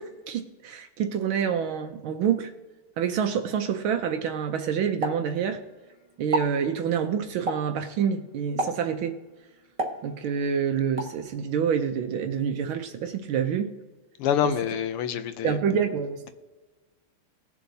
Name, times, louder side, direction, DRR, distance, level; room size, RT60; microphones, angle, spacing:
voice 1, 0.0-2.5 3.0-5.6 6.2-9.2 10.0-13.7 15.4-16.3, right 7 dB, 75° right, 1.5 m, -27 dB
Explosion, 5.0-5.9 6.2-6.6 7.5-7.8 8.6-9.0 9.8-10.5 11.0-11.2, right 1 dB, 25° right, 0.7 m, -31 dB
voice 2, 14.2-15.6, left 9 dB, 90° left, 1.7 m, -26 dB
19.5 x 7.3 x 2.7 m
omnidirectional pair, 2.4 m